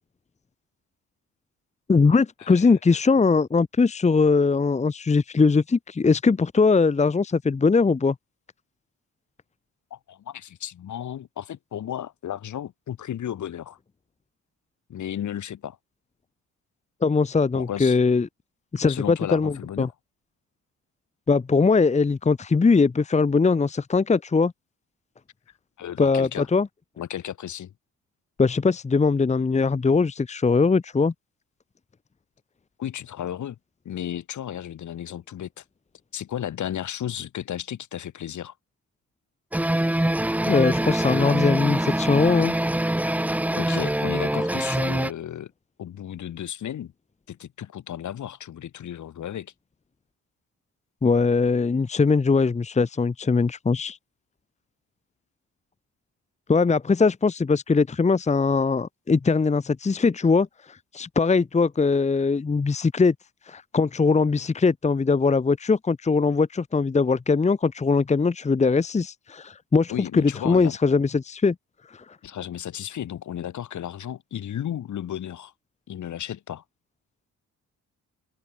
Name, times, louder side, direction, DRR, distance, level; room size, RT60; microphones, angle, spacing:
voice 1, 1.9-8.1 17.0-18.3 18.7-19.9 21.3-24.5 26.0-26.7 28.4-31.1 40.5-42.5 51.0-54.0 56.5-63.1 63.5-71.5 71.9-72.0, left 4 dB, 20° left, 1.0 m, -21 dB
voice 2, 2.4-3.0 9.9-13.8 14.9-15.8 17.5-18.0 18.9-19.9 25.8-26.5 27.0-27.7 32.8-33.6 33.8-35.6 36.1-38.5 43.5-45.5 45.8-46.9 47.3-49.5 69.9-70.8 72.2-75.5 75.9-76.6, left 10 dB, 70° left, 4.6 m, -34 dB
sound 1, 39.5-45.1, right 1 dB, 5° right, 1.1 m, -24 dB
open air
cardioid pair, 90°, 31 cm